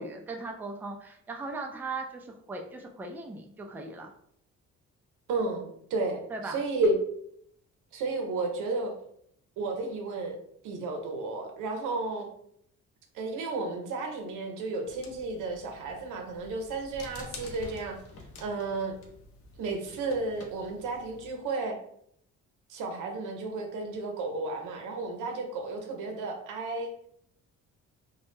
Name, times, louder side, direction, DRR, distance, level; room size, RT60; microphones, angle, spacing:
voice 1, 0.0-4.1 6.3-6.6, right 3 dB, 5° right, 1 dB, 0.3 m, -38 dB
voice 2, 5.3-6.9 7.9-8.9 9.6-10.4 10.6-12.3 13.1-18.0 18.4-19.0 19.6-21.8 22.7-26.9, right 3 dB, 85° right, 3 dB, 0.6 m, -32 dB
sound 1, 14.8-21.3, left 2 dB, 50° left, 0.6 m, -48 dB
2.2 x 2.0 x 3.1 m, 0.69 s
cardioid pair, 90°, 30 cm